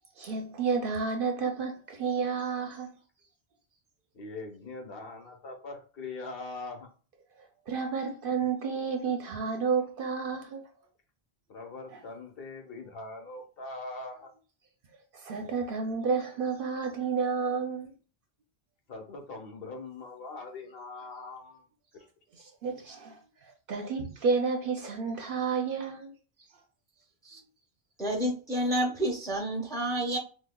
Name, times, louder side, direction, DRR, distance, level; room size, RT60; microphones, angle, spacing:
voice 1, 0.2-2.9 7.7-10.6 15.1-17.9 22.4-26.1, right 5 dB, 65° right, 0.7 m, -31 dB
voice 2, 4.1-6.9 11.5-14.3 18.9-21.6 21.9-22.1, left 3 dB, 65° left, 1.1 m, -42 dB
voice 3, 28.0-30.2, right 1 dB, 5° left, 0.5 m, -29 dB
5.0 x 2.1 x 2.2 m
omnidirectional pair, 1.1 m